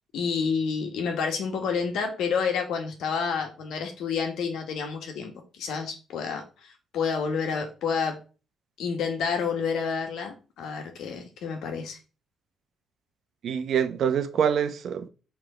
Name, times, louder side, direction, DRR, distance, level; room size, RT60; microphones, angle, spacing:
voice 1, 0.1-8.2 8.8-12.0, left 5 dB, 80° left, 1.5 m, -29 dB
voice 2, 13.4-15.1, right 8 dB, 65° right, 0.8 m, -25 dB
5.8 x 3.5 x 5.0 m
cardioid pair, 90°, 0 cm